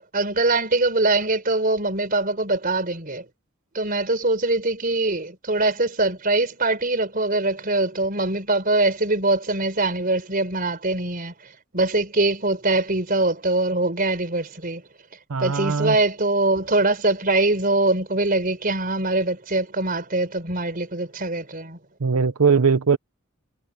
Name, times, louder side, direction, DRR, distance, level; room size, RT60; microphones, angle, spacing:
voice 1, 0.0-3.3 3.7-11.3 11.7-14.8 15.4-21.8, right 2 dB, 40° right, 4.6 m, -23 dB
voice 2, 15.3-16.0 22.0-23.0, right 5 dB, 85° right, 0.8 m, -20 dB
head